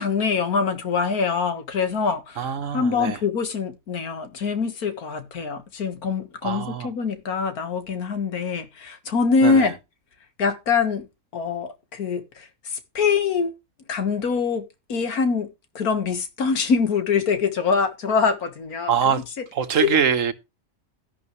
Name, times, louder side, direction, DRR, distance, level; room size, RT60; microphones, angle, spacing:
voice 1, 0.0-2.5 2.7-9.8 10.4-11.1 11.3-13.5 13.9-19.2 19.8-19.9, left 5 dB, 90° left, 2.0 m, -24 dB
voice 2, 2.4-3.2 6.4-6.9 9.4-9.7 18.9-19.2 19.5-20.3, right 7 dB, 65° right, 1.4 m, -23 dB
12.5 x 11.0 x 3.2 m
omnidirectional pair, 1.5 m